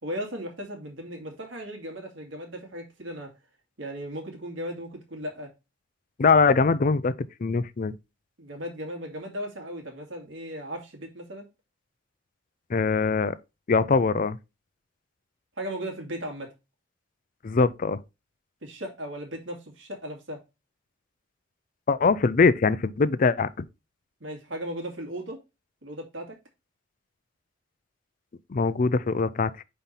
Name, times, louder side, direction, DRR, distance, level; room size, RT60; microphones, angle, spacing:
voice 1, 0.0-3.3 3.8-5.5 8.4-11.5 15.6-16.5 18.6-20.4 24.2-25.4 25.8-26.4, equal, 85° right, 2.3 m, -36 dB
voice 2, 6.2-7.1 7.4-8.0 12.7-13.4 13.7-14.4 17.4-18.0 21.9-23.5 28.5-29.5, left 4 dB, 45° left, 0.5 m, -22 dB
5.7 x 4.3 x 5.2 m
head